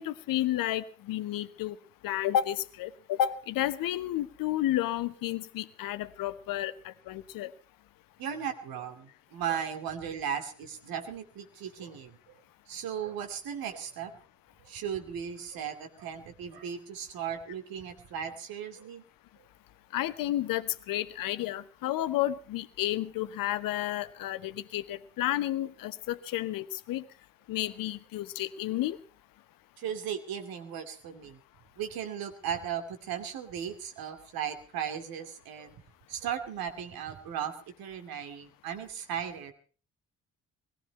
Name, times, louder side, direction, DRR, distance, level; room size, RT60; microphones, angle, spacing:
voice 1, 0.0-1.8 2.0-7.5 19.9-27.0 27.5-29.0, left 13 dB, 55° left, 14 dB, 1.1 m, -31 dB
voice 2, 8.2-12.2 12.7-14.1 14.6-19.0 29.8-31.4 31.8-35.7 36.1-37.5 37.8-39.5, right 8 dB, 55° right, 7 dB, 2.6 m, -36 dB
20.5 x 14.5 x 4.3 m, 0.40 s
figure-of-eight pair, 45°, 41 cm